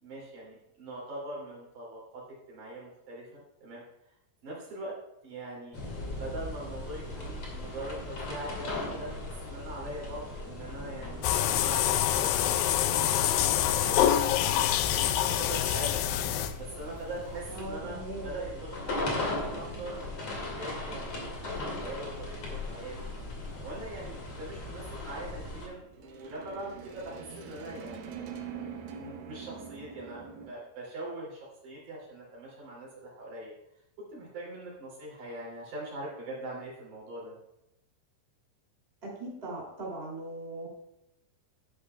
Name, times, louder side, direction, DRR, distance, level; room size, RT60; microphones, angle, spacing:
voice 1, 0.0-3.8 4.4-5.0 5.2-5.8 6.2-16.0 16.6-23.0 23.6-28.1 28.9-33.5 34.1-37.3, right 1 dB, 45° right, -5 dB, 4.0 m, -42 dB
sound 1, 5.7-25.7, left 2 dB, 40° left, 2.7 m, -38 dB
sound 2, 11.2-16.8, left 11 dB, 85° left, 2.3 m, -26 dB
voice 2, 17.5-18.3 39.0-40.7, right 2 dB, 20° right, -4 dB, 2.1 m, -39 dB
sound 3, 21.0-30.5, right 6 dB, 85° right, 2.0 m, -46 dB
12.5 x 9.9 x 2.3 m, 0.86 s
omnidirectional pair, 5.4 m